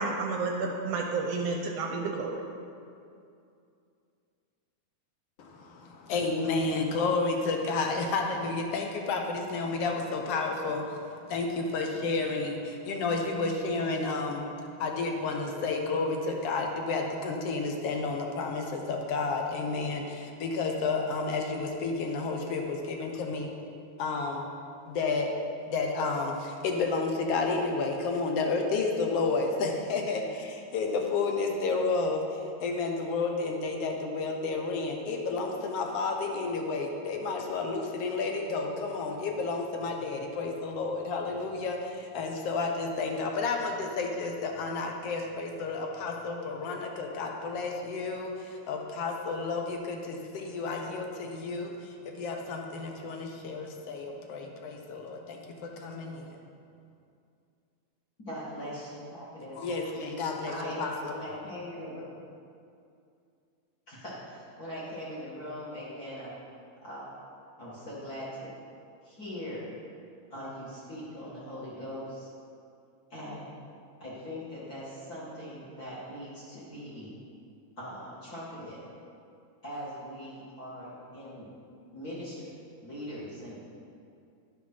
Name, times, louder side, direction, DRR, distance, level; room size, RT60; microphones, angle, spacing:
voice 1, 0.0-2.4, right 3 dB, 70° right, 2 dB, 1.6 m, -31 dB
voice 2, 5.4-14.4 14.8-23.5 24.0-24.5 24.9-25.3 25.7-56.3 59.6-61.1, left 3 dB, 65° left, 2 dB, 1.6 m, -31 dB
voice 3, 58.2-59.6 60.5-60.8 61.1-62.0 63.9-66.3 66.8-67.2 67.6-68.6 69.0-69.7 70.3-72.3 73.1-73.5 74.0-77.1 77.8-78.8 79.6-81.5 81.9-82.5 82.8-83.8, equal, 35° left, -8 dB, 2.2 m, -41 dB
11.5 x 6.2 x 5.6 m, 2.5 s
omnidirectional pair, 3.4 m